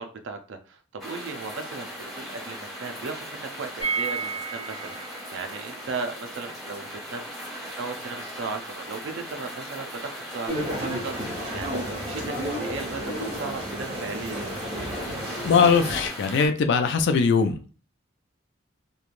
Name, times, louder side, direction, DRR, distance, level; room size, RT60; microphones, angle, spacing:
voice 1, 0.0-7.3 7.8-14.5, right 4 dB, 65° right, 0.5 m, -36 dB
sound 1, 1.0-16.5, equal, ahead, 1.3 m, -38 dB
sound 2, 3.8-9.6 9.8-9.9 10.2-10.3, right 5 dB, 35° left, 0.9 m, -36 dB
sound 3, 10.5-16.1, equal, 30° right, 1.2 m, -32 dB
voice 2, 15.4-17.7, left 5 dB, 60° left, 0.3 m, -21 dB
3.1 x 2.2 x 2.4 m
head